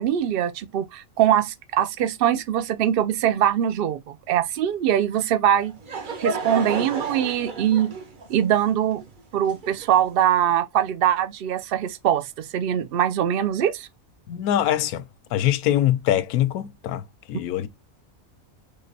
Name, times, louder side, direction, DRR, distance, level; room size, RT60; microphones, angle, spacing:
voice 1, 0.0-5.7 6.2-7.9 8.3-9.0 9.3-13.9, right 10 dB, 65° right, 0.5 m, -22 dB
Laughter / Crowd, 5.5-10.2, right 3 dB, 40° right, 0.9 m, -32 dB
voice 2, 14.3-15.1 15.3-17.7, left 12 dB, 90° left, 1.1 m, -23 dB
3.8 x 3.4 x 3.9 m
omnidirectional pair, 1.5 m